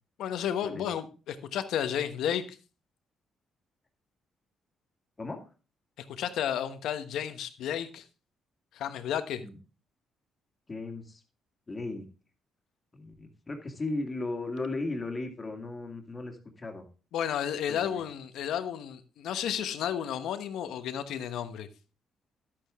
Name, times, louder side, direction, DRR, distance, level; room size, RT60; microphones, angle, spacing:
voice 1, 0.2-2.6 6.0-8.0 8.7-9.4 17.1-21.7, left 9 dB, 80° left, 1.1 m, -32 dB
voice 2, 10.7-11.2 11.7-12.0 12.9-16.9 17.7-18.0, left 2 dB, 25° left, 2.1 m, -36 dB
11.5 x 8.8 x 3.6 m
cardioid pair, 90°, 0 cm